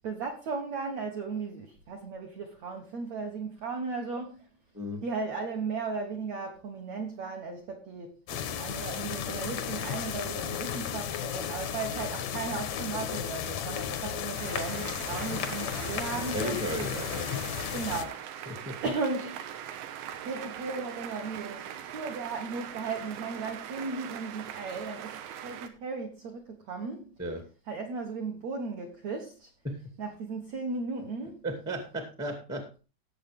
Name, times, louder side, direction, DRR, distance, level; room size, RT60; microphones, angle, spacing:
voice 1, 0.0-4.5 5.0-8.2 8.6-16.6 17.7-18.2 18.8-19.5 20.2-27.1 27.7-29.5 30.0-31.4, right 4 dB, 65° right, 1.7 m, -36 dB
sound 1, 8.3-18.0, left 8 dB, 85° left, 1.5 m, -34 dB
sound 2, 14.4-25.7, right 10 dB, 90° right, 3.4 m, -41 dB
voice 2, 16.1-17.3 18.4-18.8 27.2-27.4 29.6-29.9 31.4-32.8, equal, 5° right, 0.6 m, -35 dB
17.5 x 7.3 x 3.6 m
omnidirectional pair, 4.9 m